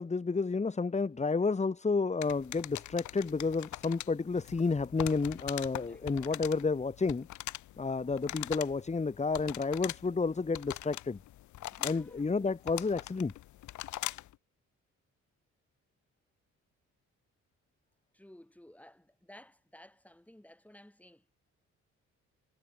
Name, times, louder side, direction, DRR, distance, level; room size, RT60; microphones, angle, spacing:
voice 1, 0.0-7.3 7.8-11.2 11.8-13.3, left 4 dB, 20° left, 1.8 m, -31 dB
sound 1, 2.2-14.3, left 14 dB, 75° left, 0.9 m, -43 dB
voice 2, 5.7-6.4 11.7-12.5 18.1-21.2, left 1 dB, 5° left, 5.1 m, -56 dB
cardioid pair, 90°, 30 cm